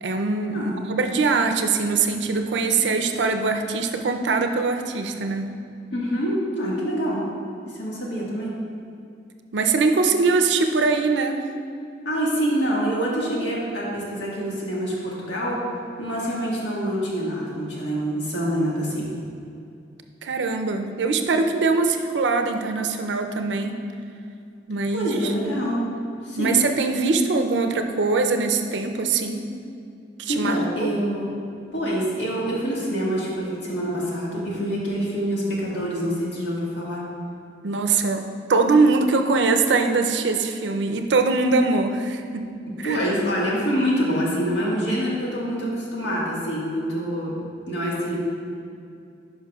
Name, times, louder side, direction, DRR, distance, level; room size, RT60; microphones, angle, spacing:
voice 1, 0.0-5.5 9.5-11.4 20.2-23.8 24.7-25.3 26.4-29.5 30.2-30.9 37.6-42.5 42.8-43.0, right 4 dB, 80° right, 6 dB, 0.5 m, -22 dB
voice 2, 5.9-7.2 7.6-8.5 12.0-15.6 16.0-19.1 24.9-25.9 26.2-26.6 30.3-31.3 31.7-37.0 42.8-48.2, equal, 80° left, -5 dB, 1.6 m, -26 dB
10.5 x 5.5 x 2.3 m, 2.5 s
head